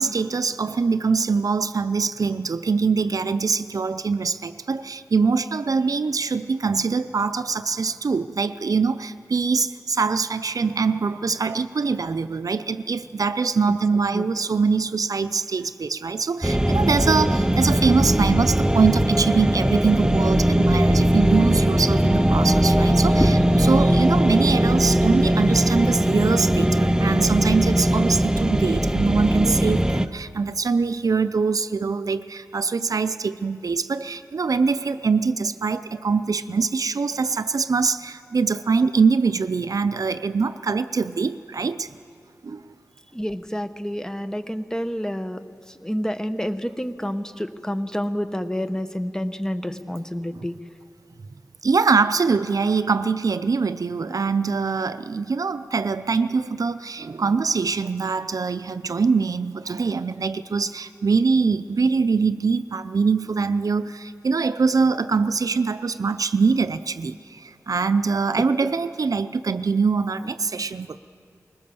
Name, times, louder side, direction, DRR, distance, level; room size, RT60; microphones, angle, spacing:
voice 1, 0.0-41.9 42.4-42.6 50.3-50.5 51.6-71.0, right 4 dB, 70° right, 12 dB, 0.6 m, -23 dB
sound 1, 16.4-30.1, right 1 dB, 10° right, 0.7 m, -20 dB
voice 2, 43.1-45.4 45.8-50.5 68.6-68.7, equal, 10° left, 10 dB, 1.0 m, -28 dB
21.0 x 19.0 x 6.9 m, 2.3 s
wide cardioid pair, 70°, 6 cm